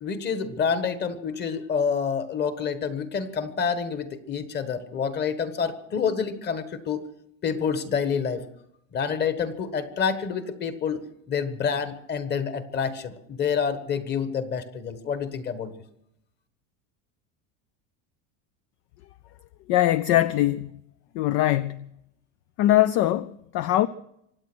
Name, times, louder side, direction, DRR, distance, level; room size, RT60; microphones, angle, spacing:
voice 1, 0.0-7.0 7.4-8.4 8.9-15.7, left 6 dB, 30° left, 1.4 m, -28 dB
voice 2, 19.7-20.7 21.1-21.9 22.6-23.9, left 14 dB, 50° left, 0.5 m, -22 dB
25.0 x 8.8 x 6.2 m
cardioid pair, 150°, 35 cm